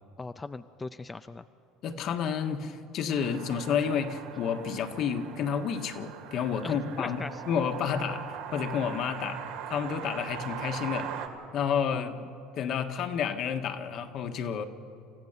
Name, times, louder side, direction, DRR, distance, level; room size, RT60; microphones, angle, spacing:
voice 1, 0.2-1.4 6.6-7.4 11.9-12.1, left 3 dB, 20° left, 11 dB, 0.6 m, -39 dB
voice 2, 1.8-9.4 9.7-11.1 11.5-12.3 12.5-14.6, left 7 dB, 55° left, 6 dB, 1.6 m, -30 dB
sound 1, 3.1-11.3, right 8 dB, 75° right, 2.1 m, -40 dB
28.0 x 14.5 x 6.8 m, 2.7 s
hypercardioid pair, 85°, 0 cm